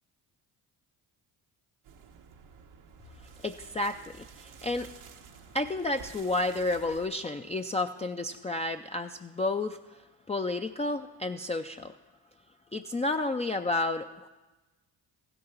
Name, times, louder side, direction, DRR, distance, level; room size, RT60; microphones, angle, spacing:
sound 1, 1.8-7.1, right 6 dB, 75° right, 1.2 m, -51 dB
voice 1, 3.4-4.9 5.5-10.0 10.3-12.0 12.7-14.3, left 2 dB, 15° left, 5 dB, 0.4 m, -31 dB
15.0 x 6.7 x 5.8 m, 1.2 s
supercardioid pair, 55°, 50 cm